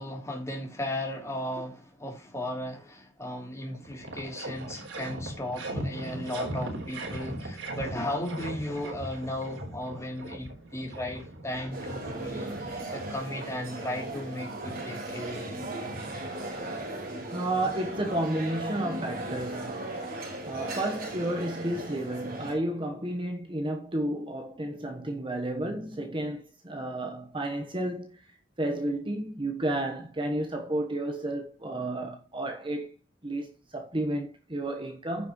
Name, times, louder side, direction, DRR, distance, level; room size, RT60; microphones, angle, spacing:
voice 1, 0.0-15.4, left 1 dB, 15° left, 3.5 m, -36 dB
sound 1, 3.4-3.5 3.7-13.1, right 1 dB, 75° right, 3.8 m, -38 dB
sound 2, 11.7-22.5, right 2 dB, 50° right, 4.5 m, -37 dB
voice 2, 17.3-20.0 20.4-28.3 28.6-32.9 33.2-35.3, right 1 dB, 25° right, 1.2 m, -32 dB
15.0 x 5.9 x 3.1 m
head